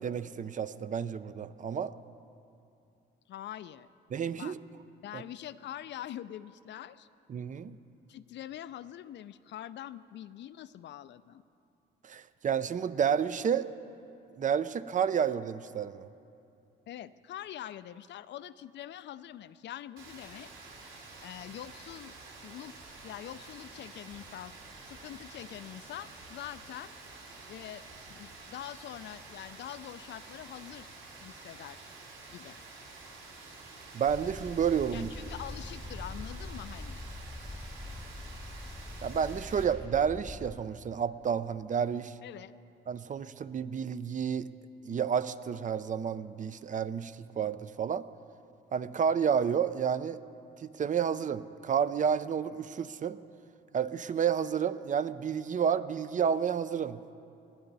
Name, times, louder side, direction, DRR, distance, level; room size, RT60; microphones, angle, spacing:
voice 1, 0.0-1.9 4.1-4.6 5.1-5.2 7.3-7.8 12.0-13.7 14.4-16.1 33.9-35.1 39.0-42.2 42.9-44.5 44.8-48.1 48.7-50.2 50.6-53.2 53.7-57.0, right 7 dB, 40° right, 14 dB, 0.5 m, -30 dB
voice 2, 3.3-3.9 4.4-4.6 5.0-7.1 8.1-11.4 16.9-20.5 21.2-22.1 22.4-22.8 23.0-24.5 24.8-26.9 27.5-31.9 32.3-32.6 34.9-37.0 42.2-42.5, left 11 dB, 65° left, 15 dB, 0.4 m, -44 dB
Rain, 20.0-39.6, right 3 dB, 70° right, 3.5 m, -49 dB
sound 1, 34.1-40.6, left 2 dB, 5° left, 0.8 m, -43 dB
20.0 x 12.0 x 4.0 m, 2.6 s
cardioid pair, 90°, 20 cm